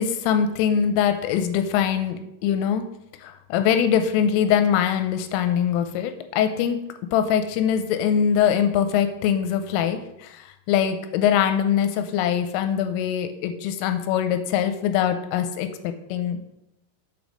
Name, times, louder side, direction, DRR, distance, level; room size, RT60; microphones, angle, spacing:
voice 1, 0.0-2.8 3.2-6.8 7.1-16.5, left 8 dB, 85° left, 8 dB, 3.1 m, -23 dB
7.6 x 5.2 x 6.2 m, 0.85 s
omnidirectional pair, 5.8 m